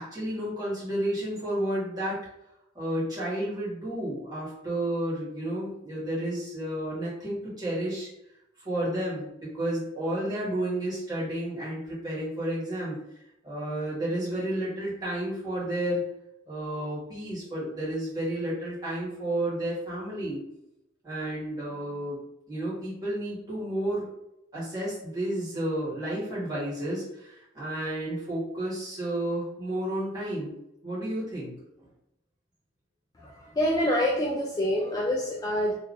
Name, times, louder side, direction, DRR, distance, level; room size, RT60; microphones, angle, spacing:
voice 1, 0.0-2.2 2.7-8.1 8.6-13.0 13.4-16.0 16.5-20.4 21.0-22.2 22.5-24.1 24.5-30.5 30.8-31.5, right 1 dB, 20° right, -8 dB, 1.5 m, -31 dB
voice 2, 33.2-35.7, equal, 20° left, -3 dB, 0.4 m, -26 dB
2.8 x 2.5 x 3.7 m, 0.81 s
head